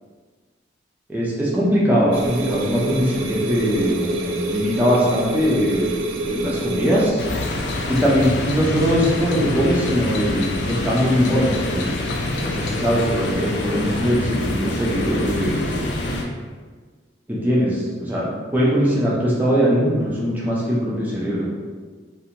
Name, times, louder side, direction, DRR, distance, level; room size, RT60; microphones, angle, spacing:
voice 1, 1.1-5.9 6.2-7.2 7.9-11.9 12.2-15.8 17.3-18.3 18.5-21.5, equal, 10° right, -7 dB, 0.4 m, -21 dB
sound 1, 2.1-7.1, right 2 dB, 80° right, 0.3 m, -27 dB
sound 2, 7.2-16.2, left 2 dB, 60° left, 0.3 m, -26 dB
2.5 x 2.1 x 2.8 m, 1.5 s
head